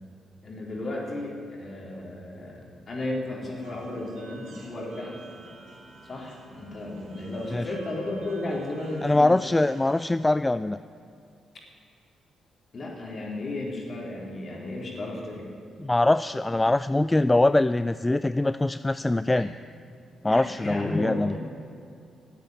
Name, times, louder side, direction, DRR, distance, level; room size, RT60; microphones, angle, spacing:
voice 1, 0.4-5.2 6.0-9.3 12.7-15.5 19.3-19.5 20.3-21.4, left 2 dB, 50° left, -2 dB, 3.9 m, -34 dB
sound 1, 3.6-10.1, right 2 dB, 75° right, 3.2 m, -49 dB
voice 2, 9.0-10.8 15.8-19.5 20.2-21.3, left 2 dB, 20° left, 13 dB, 0.3 m, -23 dB
12.5 x 8.3 x 9.4 m, 2.5 s
supercardioid pair, 50°, 0 cm